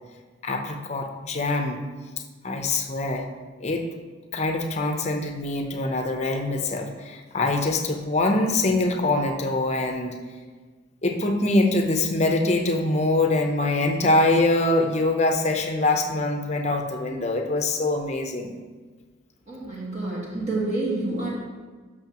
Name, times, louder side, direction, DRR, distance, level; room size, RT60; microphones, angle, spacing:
voice 1, 0.4-1.8 2.4-3.3 3.6-3.9 4.3-10.2 11.0-18.5, left 2 dB, 35° left, 4 dB, 0.7 m, -24 dB
voice 2, 19.5-21.3, right 2 dB, 35° right, -5 dB, 1.6 m, -28 dB
12.0 x 6.3 x 3.0 m, 1.4 s
head